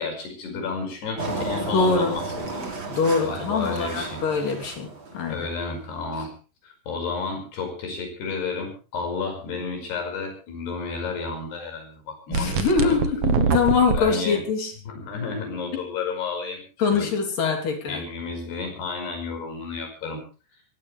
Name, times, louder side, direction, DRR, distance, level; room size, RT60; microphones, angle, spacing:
voice 1, 0.0-2.7 3.2-4.2 5.3-6.3 6.6-13.1 13.9-14.4 14.9-17.1 17.9-20.2, left 4 dB, 75° left, 4 dB, 7.4 m, -32 dB
Engine, 1.2-5.7, right 3 dB, 30° right, 3.9 m, -33 dB
voice 2, 1.7-2.2 2.9-5.4 12.3-14.7 16.8-18.0, left 5 dB, 55° left, 2 dB, 4.8 m, -23 dB
sound 1, 12.3-14.0, right 6 dB, 80° right, 1.4 m, -23 dB
22.5 x 18.0 x 3.4 m, 0.35 s
omnidirectional pair, 4.8 m